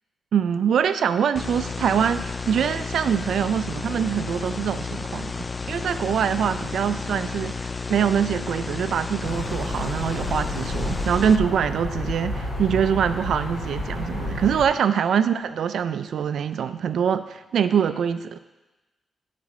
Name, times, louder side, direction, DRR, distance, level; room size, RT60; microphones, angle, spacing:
voice 1, 0.3-18.4, right 8 dB, 75° right, 12 dB, 0.4 m, -24 dB
sound 1, 1.4-11.4, left 4 dB, 20° left, 0.3 m, -32 dB
sound 2, 9.2-14.7, left 1 dB, 70° left, 2.7 m, -30 dB
11.0 x 4.1 x 4.9 m, 1.1 s
cardioid pair, 95°, 0 cm